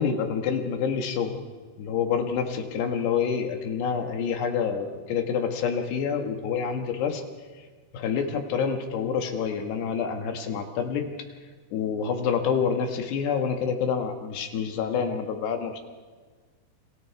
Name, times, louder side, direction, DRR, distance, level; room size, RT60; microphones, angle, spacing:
voice 1, 0.0-1.4 1.8-7.2 7.9-11.1 11.7-15.8, left 6 dB, 75° left, 5 dB, 3.7 m, -27 dB
30.0 x 26.5 x 4.7 m, 1.5 s
omnidirectional pair, 4.9 m